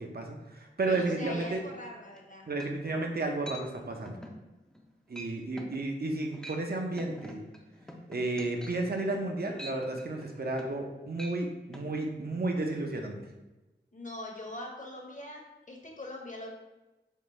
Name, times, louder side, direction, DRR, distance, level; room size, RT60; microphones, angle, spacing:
voice 1, 0.0-1.6 2.5-4.2 5.1-7.4 8.1-13.2, right 2 dB, 50° right, 2 dB, 0.6 m, -32 dB
voice 2, 0.9-2.4 13.9-16.5, left 1 dB, 40° left, 0 dB, 0.9 m, -42 dB
sound 1, 2.1-2.2 2.6-3.0 3.5-3.6 4.1-4.4 4.7-4.9 5.2-5.3 5.6-5.8 6.2-6.6 7.0-10.9 11.1-11.4 11.7-11.9, equal, 5° left, 0.5 m, -45 dB
3.7 x 2.3 x 3.8 m, 1.1 s
cardioid pair, 40°, 20 cm